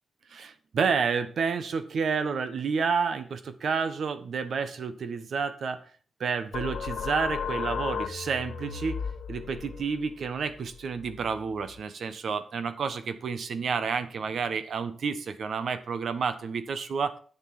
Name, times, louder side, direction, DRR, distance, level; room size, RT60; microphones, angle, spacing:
voice 1, 0.3-5.8 6.2-9.0 9.3-17.2, right 5 dB, 60° right, 11 dB, 1.2 m, -30 dB
sound 1, 6.5-11.8, left 6 dB, 75° left, 1.0 m, -35 dB
9.3 x 6.8 x 6.0 m, 0.42 s
wide cardioid pair, 150°, 0 cm